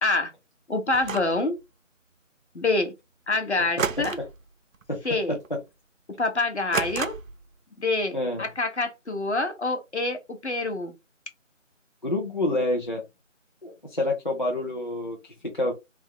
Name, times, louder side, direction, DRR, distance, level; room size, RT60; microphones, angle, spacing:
voice 1, 0.0-0.3 0.7-1.6 2.5-2.9 3.3-4.2 5.0-5.4 6.2-7.2 7.8-10.9, left 2 dB, 60° left, 1.0 m, -26 dB
sound 1, 0.9-1.4 3.8-4.4 4.7-5.1 5.4-5.5 6.7-7.5, right 6 dB, 85° right, 0.6 m, -31 dB
voice 2, 5.3-5.6 8.1-8.5 12.0-13.0 13.6-15.7, left 2 dB, 40° left, 0.6 m, -28 dB
3.4 x 2.1 x 3.1 m
figure-of-eight pair, 170°, 39 cm